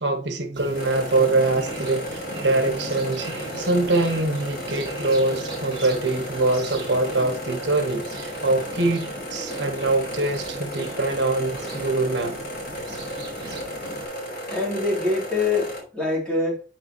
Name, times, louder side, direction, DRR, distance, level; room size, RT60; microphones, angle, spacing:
voice 1, 0.0-12.4, right 2 dB, 80° right, 1.3 m, -24 dB
sound 1, 0.5-14.1, right 2 dB, 25° right, 3.0 m, -38 dB
sound 2, 0.8-15.8, equal, 60° left, 4.0 m, -34 dB
sound 3, 7.1-8.1 9.9-10.0 11.5-12.3, right 1 dB, 35° left, 4.8 m, -47 dB
voice 2, 14.5-16.6, left 3 dB, 5° left, 3.3 m, -24 dB
8.8 x 5.9 x 3.1 m
head